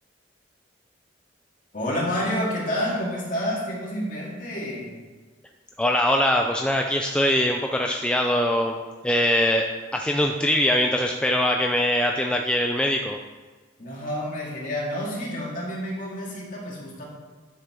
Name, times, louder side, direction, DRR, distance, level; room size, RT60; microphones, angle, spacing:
voice 1, 1.7-4.9 13.8-17.0, equal, 45° left, -4 dB, 2.4 m, -29 dB
voice 2, 5.8-8.8 9.0-13.2, left 1 dB, 5° left, 2 dB, 0.4 m, -22 dB
10.5 x 7.0 x 3.8 m, 1.4 s
head